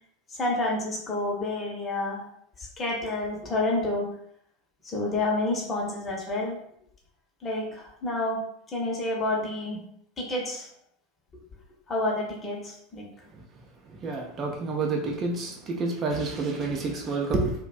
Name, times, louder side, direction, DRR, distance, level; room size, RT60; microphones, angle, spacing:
voice 1, 0.4-2.2 2.6-4.1 4.8-6.6 7.4-8.4 8.7-9.8 10.2-10.7 11.9-13.1, left 2 dB, 25° left, -2 dB, 0.7 m, -29 dB
voice 2, 14.0-17.5, right 3 dB, 30° right, 1 dB, 0.4 m, -28 dB
2.4 x 2.1 x 2.4 m, 0.68 s
figure-of-eight pair, 80°, 0 cm